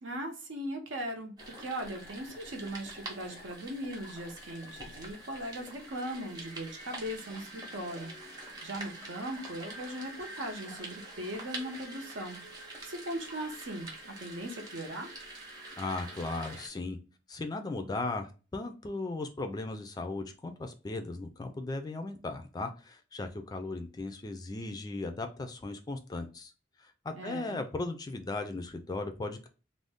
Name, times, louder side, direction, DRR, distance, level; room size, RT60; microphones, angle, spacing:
voice 1, 0.0-15.1 27.1-27.6, right 1 dB, 75° right, 3 dB, 0.7 m, -39 dB
sound 1, 1.4-16.7, right 2 dB, 20° right, 0.7 m, -45 dB
voice 2, 15.8-17.0 17.3-26.5 26.8-29.5, left 2 dB, 20° left, 7 dB, 0.3 m, -37 dB
2.5 x 2.1 x 3.4 m, 0.33 s
head